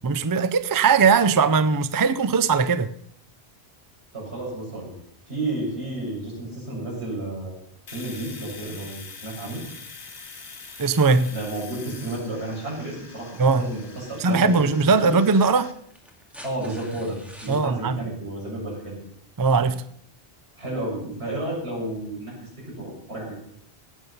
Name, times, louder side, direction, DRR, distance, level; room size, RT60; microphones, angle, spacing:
voice 1, 0.0-2.9 10.8-11.3 13.4-13.7 14.2-15.7 17.5-18.0 19.4-19.8, right 4 dB, 30° right, 0.4 m, -20 dB
voice 2, 4.1-5.0 5.3-7.6 7.9-9.6 11.3-15.2 16.4-19.0 20.6-23.4, right 1 dB, 80° right, 6.6 m, -32 dB
Domestic sounds home sounds, 7.9-15.7, left 4 dB, 85° left, 1.7 m, -44 dB
sound 1, 15.3-17.6 19.2-19.3, equal, ahead, 2.1 m, -46 dB
18.0 x 8.2 x 5.5 m
omnidirectional pair, 1.1 m